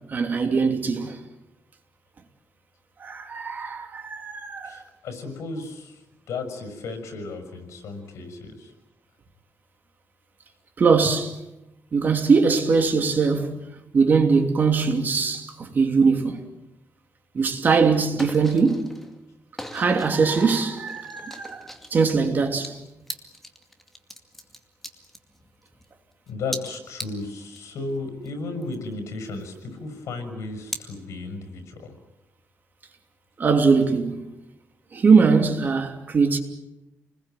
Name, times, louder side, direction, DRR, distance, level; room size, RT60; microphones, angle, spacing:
voice 1, 0.1-1.2 3.0-4.8 10.8-11.4 11.9-13.6 13.9-16.4 17.3-18.9 19.7-21.6 21.9-22.8 33.4-34.2 34.9-36.4, right 5 dB, 40° right, 3.0 m, -21 dB
voice 2, 4.6-6.0 6.3-8.7 11.0-11.1 26.3-31.9, left 3 dB, 85° left, 6.2 m, -34 dB
sound 1, 17.5-17.8 18.0-19.2 19.6-25.9 26.3-27.6 28.0-28.1 28.2-29.8 30.4-30.8, equal, 5° left, 2.3 m, -39 dB
29.0 x 21.0 x 9.2 m
wide cardioid pair, 155°, 5 cm